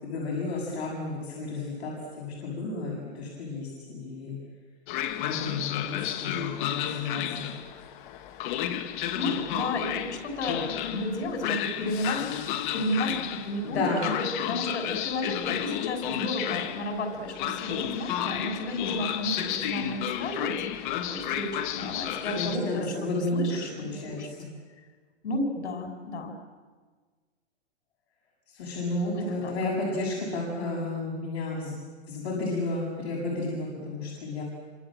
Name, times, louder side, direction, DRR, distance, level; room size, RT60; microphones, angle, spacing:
voice 1, 0.0-4.4 5.2-7.5 13.6-14.1 22.3-24.5 28.5-31.8 32.1-34.4, left 2 dB, 65° left, -2 dB, 7.6 m, -32 dB
Train, 4.9-22.6, left 11 dB, 45° left, 1.9 m, -32 dB
voice 2, 9.1-12.3 12.7-13.8 14.5-22.9 23.3-24.3 25.2-26.3 29.1-29.5, left 1 dB, 85° left, 5 dB, 6.3 m, -33 dB
28.5 x 26.0 x 7.7 m, 1.4 s
supercardioid pair, 155°, 34 cm